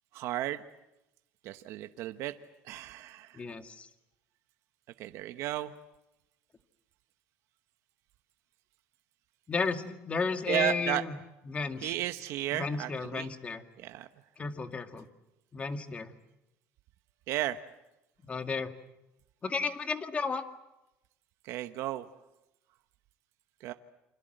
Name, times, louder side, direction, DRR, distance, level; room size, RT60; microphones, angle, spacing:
voice 1, 0.1-0.6 1.4-2.3 2.6-3.4 5.0-5.7 10.5-11.0 11.8-13.3 13.8-14.1 17.3-17.6 21.4-22.1 23.6-23.7, right 14 dB, 65° right, 9 dB, 1.1 m, -34 dB
voice 2, 3.3-3.9 9.5-11.2 11.5-11.9 12.5-13.6 14.4-15.1 15.5-16.1 18.2-18.7 19.4-20.4, left 4 dB, 25° left, 7 dB, 2.1 m, -33 dB
28.5 x 26.0 x 7.9 m, 0.94 s
cardioid pair, 120°, 5 cm